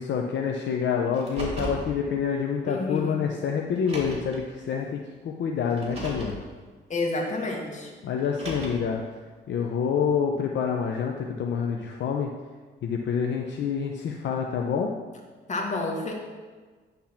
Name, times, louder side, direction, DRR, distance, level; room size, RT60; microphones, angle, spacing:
voice 1, 0.0-6.4 8.0-9.0 9.5-12.3 12.8-14.9, left 6 dB, 65° left, 1 dB, 0.7 m, -27 dB
Car, 1.1-1.9 3.0-3.1 3.8-4.4 5.7-6.4 8.2-8.9, right 2 dB, 30° right, 2.5 m, -35 dB
voice 2, 2.7-3.2 6.9-7.9 15.5-16.1, left 2 dB, 35° left, 0 dB, 1.8 m, -29 dB
10.5 x 3.6 x 5.8 m, 1.4 s
cardioid pair, 90°, 20 cm